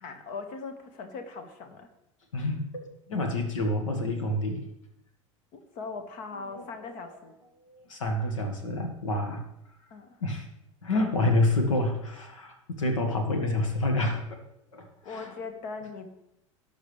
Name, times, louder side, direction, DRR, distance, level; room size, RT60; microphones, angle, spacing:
voice 1, 0.0-1.9 2.4-2.5 5.5-7.3 9.9-10.2 15.0-16.1, left 4 dB, 55° left, 7 dB, 1.7 m, -40 dB
voice 2, 2.3-4.6 6.5-6.7 7.7-9.4 10.2-10.5 10.8-14.4 14.7-15.3, left 1 dB, 80° left, 4 dB, 1.8 m, -28 dB
18.0 x 6.4 x 3.4 m, 0.85 s
figure-of-eight pair, 75°, 16 cm